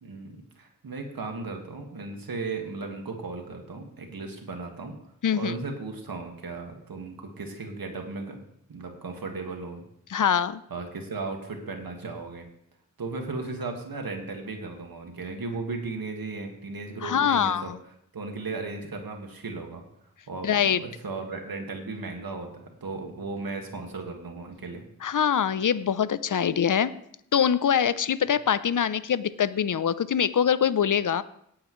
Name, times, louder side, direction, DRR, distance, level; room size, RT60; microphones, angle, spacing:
voice 1, 0.0-5.0 5.3-8.4 8.7-9.8 10.7-12.5 13.0-17.7 18.1-19.8 20.3-24.8, right 3 dB, 80° right, 3 dB, 1.9 m, -36 dB
voice 2, 5.2-5.5 10.1-10.6 17.0-17.8 20.4-20.8 25.0-26.9 27.3-31.2, left 8 dB, 60° left, 16 dB, 0.6 m, -24 dB
18.0 x 8.5 x 3.1 m, 0.72 s
cardioid pair, 40°, 35 cm